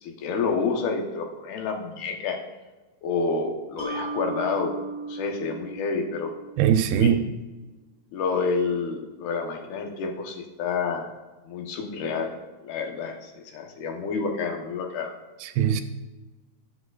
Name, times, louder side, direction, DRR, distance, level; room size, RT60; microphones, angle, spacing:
voice 1, 0.0-2.4 3.0-4.7 5.1-6.3 7.0-7.1 8.1-11.1 11.5-12.3 12.6-15.1, left 4 dB, 80° left, 3 dB, 3.1 m, -29 dB
Mallet percussion, 3.8-7.1, right 3 dB, 15° right, 2.1 m, -36 dB
voice 2, 6.6-7.2 15.4-15.8, right 9 dB, 80° right, 9 dB, 2.4 m, -21 dB
17.5 x 7.8 x 2.5 m, 1.2 s
omnidirectional pair, 4.4 m